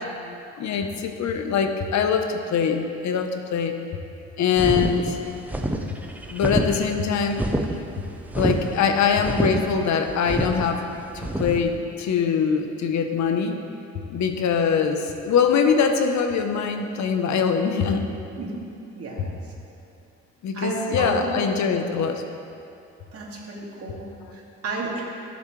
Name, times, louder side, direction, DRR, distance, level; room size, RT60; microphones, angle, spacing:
voice 1, 0.6-3.8 4.4-5.2 6.3-7.5 8.3-10.8 11.1-13.6 14.1-18.1 20.4-22.2, left 6 dB, 65° left, 6 dB, 1.0 m, -23 dB
sound 1, 4.6-11.6, right 1 dB, 5° right, 0.7 m, -27 dB
voice 2, 19.0-19.5 20.5-21.3 23.1-25.0, right 3 dB, 50° right, -4 dB, 2.3 m, -32 dB
15.5 x 7.3 x 3.3 m, 2.6 s
cardioid pair, 90°, 30 cm